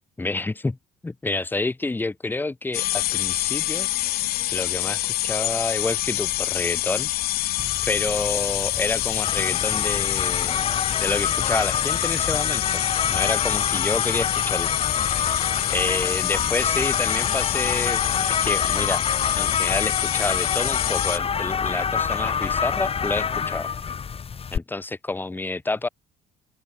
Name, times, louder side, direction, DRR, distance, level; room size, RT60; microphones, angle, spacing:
voice 1, 0.2-0.8 1.0-3.9 4.5-7.1 7.9-10.6 11.0-12.8 13.1-14.7 15.7-18.0 18.3-19.0 19.4-23.7 24.5-25.9, left 3 dB, 10° left, 0.9 m, -28 dB
sound 1, 2.7-21.2, left 16 dB, 65° left, 0.4 m, -26 dB
sound 2, 7.6-24.6, left 6 dB, 35° left, 2.6 m, -27 dB
open air
cardioid pair, 110°, 17 cm